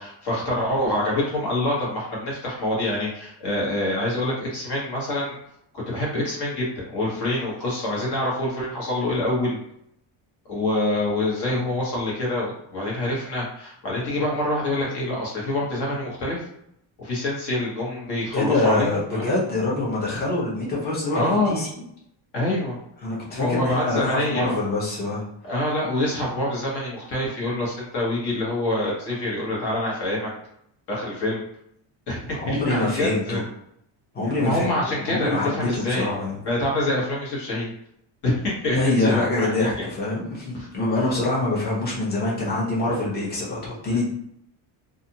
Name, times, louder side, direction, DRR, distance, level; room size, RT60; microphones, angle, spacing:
voice 1, 0.0-5.3 5.7-9.6 10.5-16.4 17.0-19.3 21.1-21.6 22.3-22.8 23.4-24.6 25.4-30.3 30.9-31.4 32.1-33.4 34.4-36.1 36.4-37.7 38.2-39.8 40.5-40.7 41.0-41.1, left 1 dB, 55° left, -4 dB, 1.3 m, -26 dB
voice 2, 18.3-21.7 23.0-25.2 32.4-33.4 34.1-34.7 35.0-36.4 38.7-44.1, left 2 dB, 20° left, -6 dB, 0.7 m, -25 dB
2.5 x 2.4 x 2.8 m, 0.74 s
cardioid pair, 175°, 48 cm